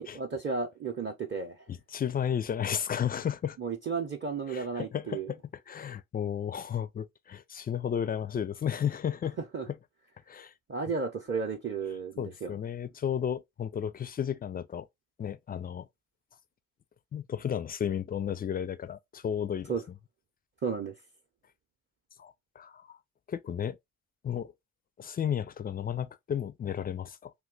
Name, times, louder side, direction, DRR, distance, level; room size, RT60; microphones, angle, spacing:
voice 1, 0.0-1.6 3.6-5.3 9.5-9.7 10.7-12.5 19.7-19.8 20.6-20.9, right 5 dB, 30° right, 0.7 m, -33 dB
voice 2, 1.7-3.6 4.5-5.4 5.7-9.4 10.3-10.5 12.2-14.9 15.2-15.9 17.1-19.8 22.2-23.0 23.3-23.8 24.2-24.5 25.0-27.3, left 8 dB, 25° left, 0.3 m, -33 dB
2.7 x 2.2 x 3.7 m
hypercardioid pair, 45°, 39 cm